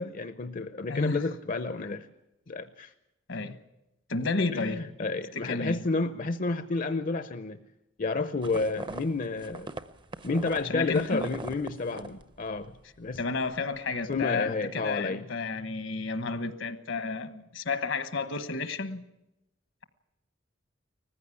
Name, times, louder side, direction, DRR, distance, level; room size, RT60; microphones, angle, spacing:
voice 1, 0.0-2.1 2.5-2.9 4.5-7.6 8.0-9.7 10.2-12.7 13.0-13.2 14.1-15.2, left 3 dB, 45° left, 0.7 m, -30 dB
voice 2, 0.9-1.2 3.3-3.6 4.1-4.8 5.3-5.8 10.6-11.2 13.2-19.0, left 3 dB, 70° left, 1.2 m, -31 dB
sound 1, 8.4-12.8 13.0-13.6, right 2 dB, 25° right, 0.7 m, -41 dB
19.5 x 15.0 x 9.9 m
head